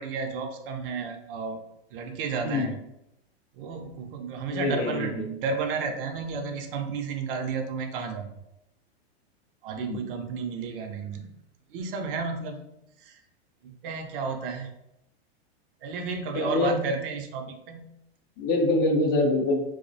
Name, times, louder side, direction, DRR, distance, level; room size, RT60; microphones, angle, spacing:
voice 1, 0.0-2.8 3.5-8.4 9.6-11.4 11.7-12.6 13.0-13.2 13.6-14.7 15.8-17.9, right 5 dB, 55° right, 5 dB, 0.4 m, -32 dB
voice 2, 4.5-5.2 9.8-10.1 16.3-16.8 18.4-19.6, left 2 dB, 30° left, 1 dB, 0.4 m, -25 dB
2.4 x 2.0 x 2.5 m, 0.84 s
hypercardioid pair, 125°, 32 cm